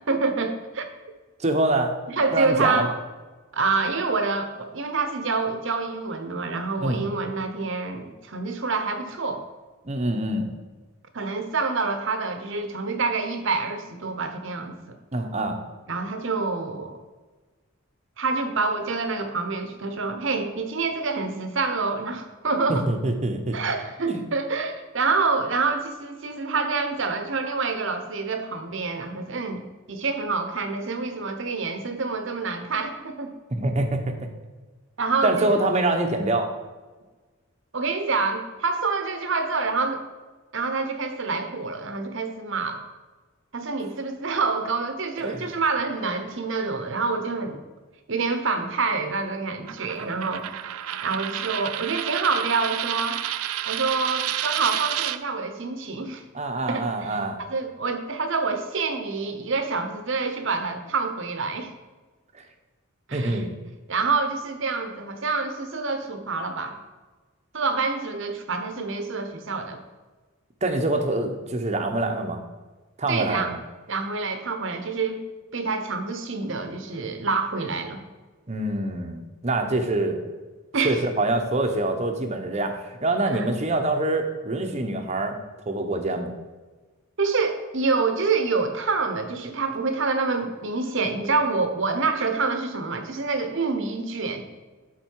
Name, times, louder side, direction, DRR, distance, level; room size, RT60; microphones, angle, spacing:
voice 1, 0.1-0.8 2.1-2.9 3.5-9.4 11.1-14.9 15.9-17.0 18.2-22.9 23.5-29.6 29.9-33.3 35.0-35.6 37.7-40.0 40.5-42.8 43.5-47.6 48.1-50.5 51.0-53.2 53.6-56.2 56.7-61.7 63.1-63.4 63.9-66.8 67.5-69.8 73.1-73.5 73.9-75.2 75.5-78.0 80.7-81.0 83.3-83.5 87.2-94.4, right 4 dB, 60° right, 7 dB, 0.9 m, -27 dB
voice 2, 1.4-1.9 2.3-2.9 6.8-7.0 9.8-10.5 15.1-15.6 22.7-23.6 24.1-24.2 33.5-34.1 35.2-36.5 45.2-45.4 49.9-50.1 56.3-57.4 62.3-62.4 63.1-63.5 70.6-72.4 73.0-73.6 78.5-80.2 80.8-85.4 85.7-86.3, right 2 dB, 30° right, 5 dB, 0.9 m, -25 dB
Coin (dropping), 49.7-55.2, right 12 dB, 90° right, 0.4 m, -30 dB
12.0 x 4.3 x 4.7 m, 1.3 s
head